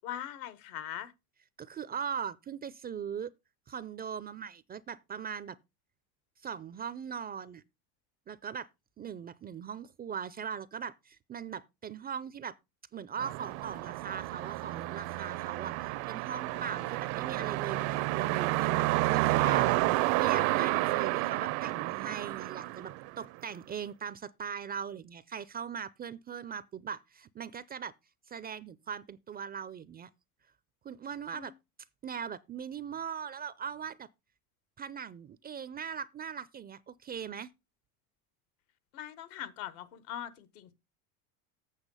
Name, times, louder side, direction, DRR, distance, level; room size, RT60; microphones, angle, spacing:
voice 1, 0.0-1.1 16.5-16.7 31.3-31.5 38.9-40.7, left 11 dB, 80° left, 1.4 m, -41 dB
voice 2, 1.6-3.3 3.7-5.6 6.4-7.6 8.3-8.7 9.0-12.5 12.9-27.9 28.3-30.1 30.8-31.5 32.0-34.1 34.8-37.5, right 7 dB, 25° right, 0.4 m, -40 dB
sound 1, 13.2-23.4, right 18 dB, 65° right, 0.6 m, -30 dB
8.2 x 6.1 x 5.4 m
supercardioid pair, 100°, 43 cm